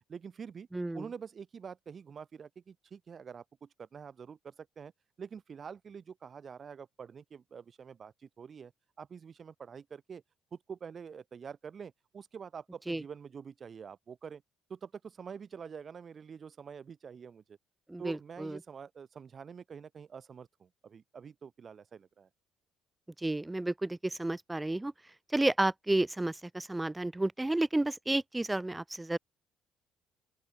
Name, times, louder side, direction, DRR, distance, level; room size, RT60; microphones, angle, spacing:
voice 1, 0.1-0.7 0.9-4.9 5.2-8.7 9.0-10.2 10.5-14.4 14.7-17.6 18.0-22.3, right 6 dB, 45° right, 2.1 m, -46 dB
voice 2, 0.7-1.1 12.9-13.0 17.9-18.6 23.2-24.9 25.3-29.2, right 2 dB, 15° right, 0.4 m, -31 dB
open air
hypercardioid pair, 55°, 0 cm